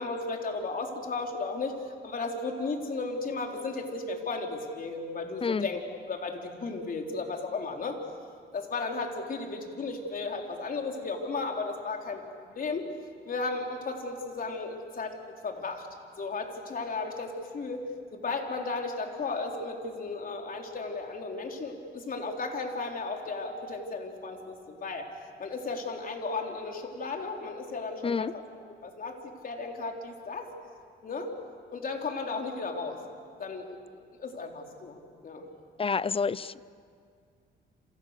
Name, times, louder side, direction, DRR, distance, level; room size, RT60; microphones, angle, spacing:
voice 1, 0.0-1.8 2.0-5.8 6.1-8.0 8.5-12.9 13.2-15.1 15.4-15.9 16.2-17.9 18.1-25.1 25.4-28.4 28.8-30.5 31.0-31.3 31.7-33.0 33.4-33.8 34.1-35.0 35.2-35.5, left 3 dB, 45° left, 2 dB, 3.8 m, -34 dB
voice 2, 35.8-36.6, left 5 dB, 30° left, 19 dB, 0.6 m, -28 dB
28.0 x 28.0 x 6.7 m, 2.2 s
cardioid pair, 90°, 20 cm